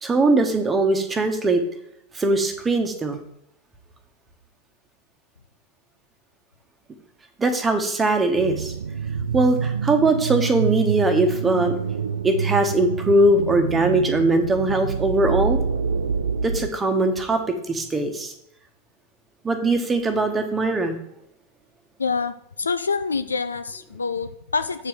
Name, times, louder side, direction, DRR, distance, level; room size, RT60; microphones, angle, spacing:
voice 1, 0.0-1.6 2.1-3.2 7.4-8.7 9.3-11.8 12.2-15.6 16.4-18.3 19.4-21.0, right 2 dB, 15° right, 6 dB, 1.3 m, -21 dB
sound 1, 8.4-16.7, right 6 dB, 70° right, 0.5 m, -27 dB
voice 2, 22.0-24.9, left 4 dB, 75° left, 11 dB, 0.4 m, -26 dB
8.0 x 4.8 x 6.2 m, 0.76 s
figure-of-eight pair, 90°, 0 cm